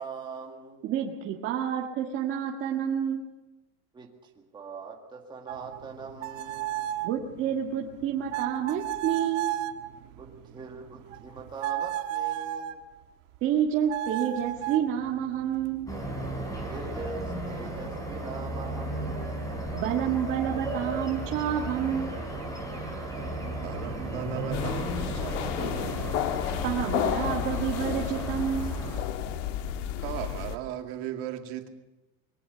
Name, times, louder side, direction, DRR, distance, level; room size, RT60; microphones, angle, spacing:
voice 1, 0.0-0.9 3.9-7.0 10.2-12.8 16.6-19.5, right 4 dB, 10° right, 0 dB, 1.9 m, -42 dB
voice 2, 0.8-3.3 7.0-9.5 13.4-15.9 19.7-22.4 26.6-28.8, right 9 dB, 35° right, 0 dB, 1.7 m, -29 dB
sound 1, 5.5-12.9 13.9-16.8, right 12 dB, 85° right, 1.7 m, -35 dB
sound 2, 15.9-29.0, right 1 dB, 10° left, 4.5 m, -34 dB
voice 3, 23.6-26.4 30.0-31.7, right 11 dB, 55° right, 5 dB, 2.3 m, -37 dB
sound 3, 24.5-30.6, left 11 dB, 75° left, 1.5 m, -32 dB
22.5 x 18.5 x 6.9 m, 1.0 s
cardioid pair, 180°, 38 cm